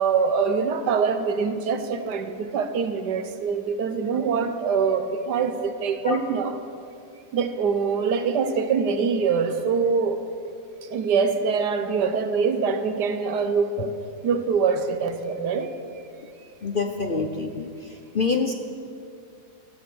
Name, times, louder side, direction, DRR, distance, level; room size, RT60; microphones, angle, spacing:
voice 1, 0.0-6.6 7.3-10.2 10.8-13.9 14.2-15.7, right 5 dB, 85° right, 8 dB, 1.6 m, -24 dB
voice 2, 16.6-17.7 18.1-18.5, left 4 dB, 50° left, 5 dB, 0.6 m, -25 dB
14.0 x 14.0 x 6.2 m, 2.5 s
omnidirectional pair, 1.7 m